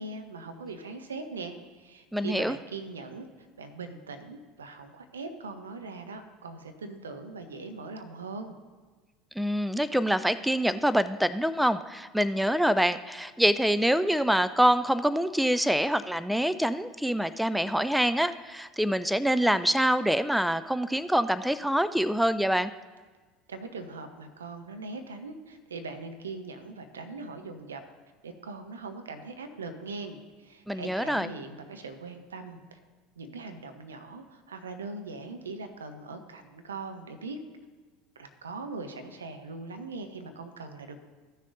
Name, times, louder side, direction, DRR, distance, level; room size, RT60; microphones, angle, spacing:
voice 1, 0.0-3.3 3.6-8.6 23.5-27.8 28.2-32.8 33.2-37.4 38.2-41.0, right 3 dB, 80° right, 7 dB, 0.7 m, -41 dB
voice 2, 2.1-2.6 9.4-22.7 30.7-31.3, equal, ahead, 14 dB, 0.3 m, -25 dB
14.5 x 6.4 x 2.6 m, 1.4 s
figure-of-eight pair, 70°, 0 cm